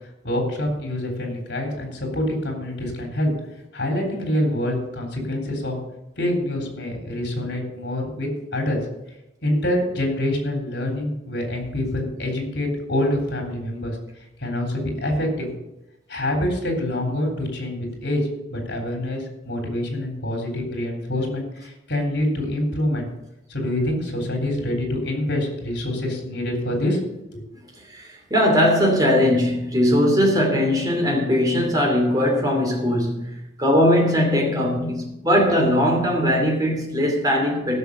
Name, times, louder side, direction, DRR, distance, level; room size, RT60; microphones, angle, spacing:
voice 1, 0.2-3.3 3.7-5.8 6.2-8.8 9.4-14.0 14.4-15.5 16.1-18.2 18.5-23.1 23.5-27.0 27.3-27.4, left 1 dB, 70° left, 2 dB, 3.6 m, -26 dB
voice 2, 27.9-37.8, equal, 20° right, 0 dB, 2.9 m, -20 dB
15.0 x 6.4 x 6.7 m, 0.90 s
head